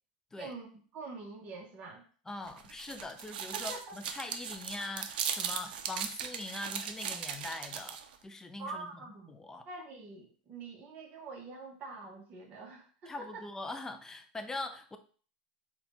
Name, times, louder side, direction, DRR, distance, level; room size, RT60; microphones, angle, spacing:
voice 1, 0.9-2.0 3.5-4.0 8.6-9.4 9.7-13.4, right 3 dB, 35° right, -1 dB, 0.7 m, -45 dB
voice 2, 2.3-8.9 9.3-9.6 13.1-15.0, left 2 dB, 10° left, 7 dB, 0.4 m, -42 dB
sound 1, 2.5-8.1, right 7 dB, 85° right, 0.4 m, -38 dB
4.0 x 2.2 x 2.9 m, 0.42 s
supercardioid pair, 130°, 5 cm